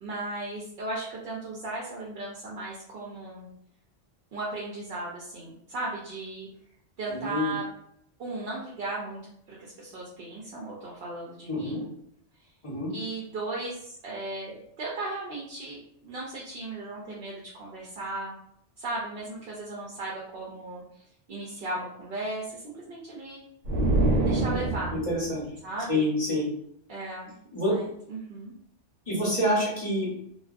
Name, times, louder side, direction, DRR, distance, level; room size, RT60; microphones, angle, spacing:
voice 1, 0.0-3.5 4.3-6.5 7.0-7.7 8.2-9.2 9.5-11.9 12.9-18.3 18.8-21.0 21.3-23.5 24.2-24.9 25.6-26.1 26.9-27.3 27.7-28.5, right 2 dB, 60° right, -4 dB, 0.7 m, -36 dB
voice 2, 7.1-7.5 11.5-11.8 12.6-12.9 24.9-25.4 25.9-26.5 27.5-27.7 29.1-30.1, left 1 dB, 30° left, -6 dB, 0.9 m, -27 dB
sound 1, 23.6-25.3, right 2 dB, 85° right, 0.9 m, -25 dB
2.4 x 2.2 x 2.4 m, 0.72 s
omnidirectional pair, 1.2 m